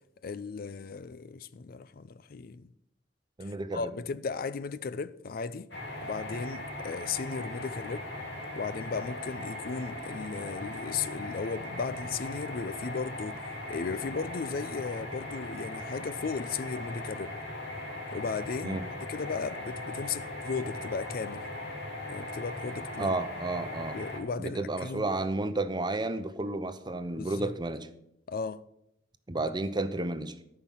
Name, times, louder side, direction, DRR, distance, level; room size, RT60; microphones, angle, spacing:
voice 1, 0.2-2.7 3.4-5.7 6.0-8.1 8.6-13.4 13.7-17.3 18.1-18.8 19.1-21.5 22.1-23.1 23.9-25.1 27.2-27.5 28.3-28.6, left 5 dB, 55° left, 0.4 m, -36 dB
voice 2, 3.4-3.9 18.6-18.9 23.0-24.0 24.4-27.9 29.3-30.4, right 2 dB, 25° right, 0.8 m, -32 dB
sound 1, 5.7-24.2, left 1 dB, 70° left, 2.8 m, -39 dB
13.0 x 5.8 x 7.3 m
head